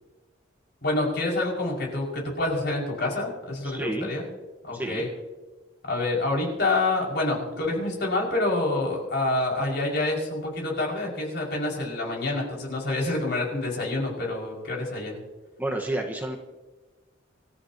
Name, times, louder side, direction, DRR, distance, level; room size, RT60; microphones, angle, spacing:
voice 1, 0.8-4.3 4.6-5.1 5.9-15.2, left 2 dB, 60° left, -2 dB, 5.9 m, -27 dB
voice 2, 3.6-4.1 4.7-5.1 15.6-16.4, right 1 dB, 10° right, 1 dB, 1.4 m, -30 dB
26.5 x 14.0 x 3.0 m, 1.2 s
head